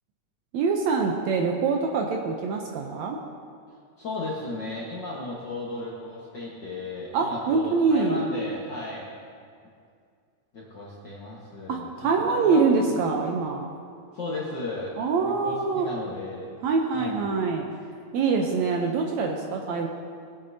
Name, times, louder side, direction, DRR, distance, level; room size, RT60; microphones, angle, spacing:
voice 1, 0.5-3.2 7.1-8.2 11.7-13.7 15.0-15.9 16.6-17.6 18.1-19.9, right 4 dB, 75° right, 1 dB, 1.8 m, -24 dB
voice 2, 4.0-9.1 10.5-11.9 12.2-12.9 14.1-16.5 16.9-17.2, left 2 dB, 50° left, -5 dB, 1.4 m, -35 dB
19.0 x 8.6 x 2.7 m, 2.2 s
omnidirectional pair, 3.7 m